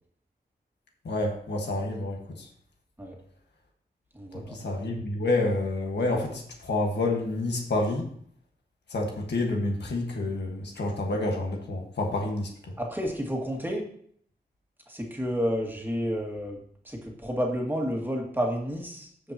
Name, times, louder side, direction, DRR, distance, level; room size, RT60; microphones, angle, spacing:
voice 1, 1.0-2.2 4.5-8.1 8.9-12.7, left 2 dB, 90° left, 1 dB, 1.5 m, -28 dB
voice 2, 4.1-4.6 12.8-13.9 14.9-16.6 16.8-19.3, equal, 10° right, 0 dB, 1.9 m, -30 dB
15.0 x 5.2 x 2.9 m, 0.63 s
wide cardioid pair, 80°, 17 cm